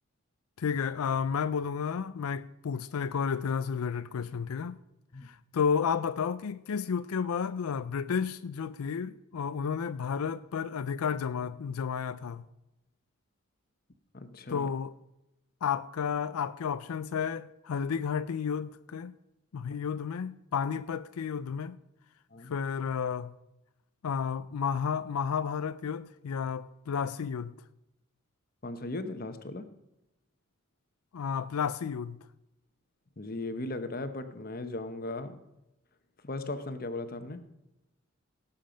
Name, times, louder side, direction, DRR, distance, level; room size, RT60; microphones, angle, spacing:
voice 1, 0.6-4.8 5.2-12.4 14.5-14.9 15.6-19.2 19.5-21.8 22.4-23.3 24.0-27.5 31.1-32.2, left 6 dB, 90° left, 0.4 m, -32 dB
voice 2, 14.1-14.7 22.3-22.5 28.6-29.7 33.2-35.4 36.2-37.4, left 2 dB, 40° left, 0.9 m, -37 dB
17.0 x 7.4 x 5.1 m
head